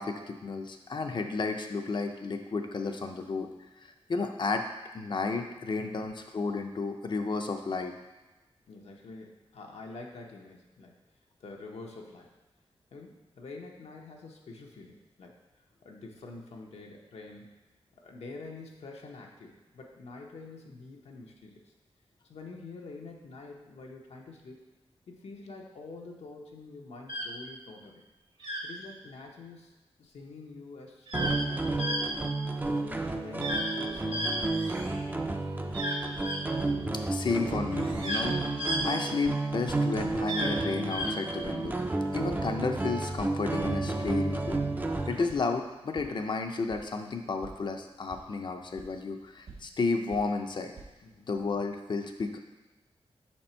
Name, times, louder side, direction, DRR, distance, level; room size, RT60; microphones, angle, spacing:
voice 1, 0.0-3.5 3.8-4.7 4.9-7.9 37.1-41.8 42.1-44.6 45.1-50.7 51.3-52.4, left 4 dB, 45° left, 5 dB, 0.5 m, -32 dB
voice 2, 5.8-6.1 8.7-11.0 11.4-12.3 12.9-15.4 15.8-17.5 18.0-21.7 22.2-24.6 25.1-28.0 28.6-29.7 30.0-32.2 32.7-34.6 51.0-51.3, left 3 dB, 90° left, 0 dB, 0.8 m, -46 dB
sound 1, 27.1-27.3 28.4-28.7 31.1-31.4 31.8-32.0 33.4-33.7 34.1-35.0 35.7-36.4 37.7-38.2 38.6-38.8 40.3-40.5 40.9-41.1, equal, 50° right, 1.1 m, -33 dB
sound 2, 31.1-45.3, right 2 dB, 15° right, 0.4 m, -31 dB
sound 3, 42.2-51.2, right 4 dB, 75° right, 1.7 m, -53 dB
5.8 x 4.3 x 4.3 m, 1.2 s
wide cardioid pair, 145°, 11 cm